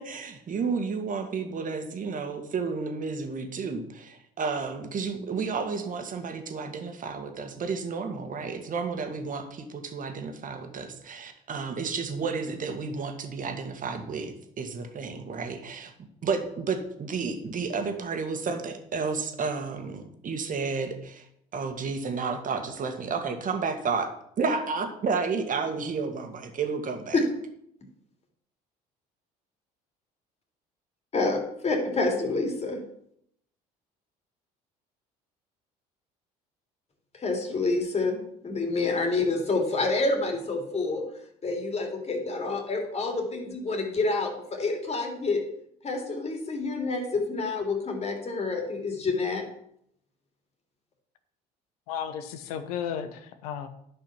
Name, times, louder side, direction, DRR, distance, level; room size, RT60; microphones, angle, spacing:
voice 1, 0.0-15.9 16.2-21.3 21.5-27.2, right 5 dB, 45° right, 6 dB, 1.9 m, -31 dB
voice 2, 31.1-32.8 37.1-41.0 41.4-45.4 45.8-49.4, left 3 dB, 35° left, 2 dB, 2.9 m, -28 dB
voice 3, 51.9-53.7, left 8 dB, 85° left, 11 dB, 1.0 m, -34 dB
10.5 x 5.6 x 5.9 m, 0.72 s
hypercardioid pair, 70°, 19 cm